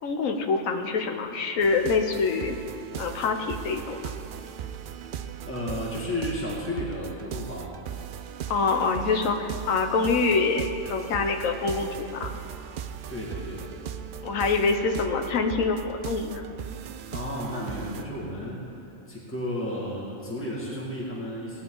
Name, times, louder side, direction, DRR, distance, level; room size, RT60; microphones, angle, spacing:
voice 1, 0.0-2.6 3.0-4.2 8.5-12.4 14.2-16.4, left 4 dB, 75° left, 5 dB, 1.3 m, -25 dB
sound 1, 1.6-18.0, right 8 dB, 80° right, 0.4 m, -38 dB
voice 2, 5.5-7.7 13.1-13.7 17.1-18.7 19.1-21.6, left 1 dB, 10° left, -5 dB, 2.0 m, -33 dB
18.0 x 9.8 x 3.9 m, 2.6 s
omnidirectional pair, 1.4 m